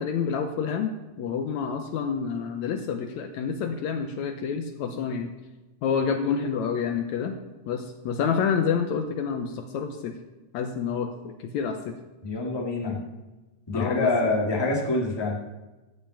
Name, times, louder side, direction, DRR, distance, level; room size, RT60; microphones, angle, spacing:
voice 1, 0.0-5.3 5.8-7.4 7.7-10.1 10.5-12.0 13.7-14.3, left 6 dB, 75° left, 5 dB, 1.9 m, -28 dB
voice 2, 12.2-13.0 13.7-15.4, left 2 dB, 10° left, -2 dB, 1.5 m, -26 dB
13.5 x 5.8 x 8.5 m, 1.1 s
omnidirectional pair, 3.6 m